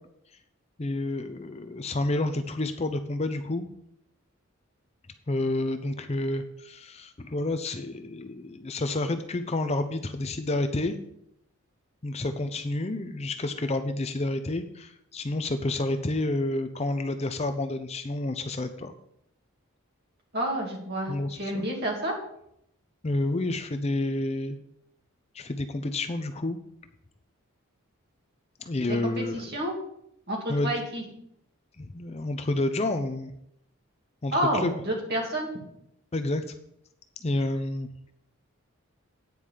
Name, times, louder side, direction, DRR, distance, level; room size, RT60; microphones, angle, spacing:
voice 1, 0.8-3.7 5.3-11.0 12.0-18.9 21.1-21.7 23.0-24.6 25.3-26.6 28.6-29.5 30.5-30.8 31.8-33.3 34.2-34.7 36.1-36.5 37.2-37.9, left 2 dB, 30° left, 8 dB, 0.5 m, -29 dB
voice 2, 20.3-22.1 29.0-29.8 30.3-31.0 34.3-35.5, right 1 dB, 45° right, -1 dB, 2.7 m, -29 dB
9.3 x 4.9 x 7.3 m, 0.76 s
head